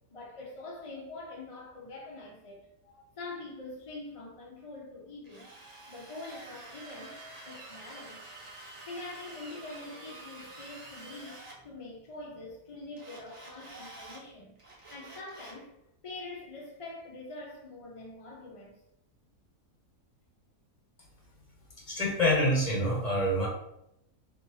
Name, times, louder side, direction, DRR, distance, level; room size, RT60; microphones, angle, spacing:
voice 1, 0.1-5.5 5.9-8.2 8.8-15.8 16.0-18.8, left 2 dB, 60° left, 0.3 m, -45 dB
Drill, 5.2-11.6 13.0-14.2 14.6-15.6, right 2 dB, 30° right, 0.6 m, -48 dB
voice 2, 21.9-23.5, equal, 30° left, 1.2 m, -26 dB
3.4 x 3.0 x 2.7 m
omnidirectional pair, 1.5 m